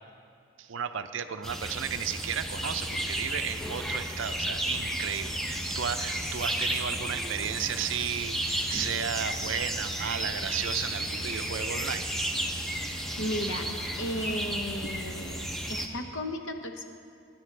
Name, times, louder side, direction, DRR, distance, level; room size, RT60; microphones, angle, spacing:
voice 1, 0.6-12.1, right 8 dB, 60° right, 10 dB, 0.5 m, -34 dB
sound 1, 1.4-15.9, right 1 dB, ahead, 0.6 m, -33 dB
voice 2, 13.2-13.7 13.9-16.9, left 1 dB, 60° left, 5 dB, 0.9 m, -34 dB
19.5 x 10.0 x 3.3 m, 2.4 s
head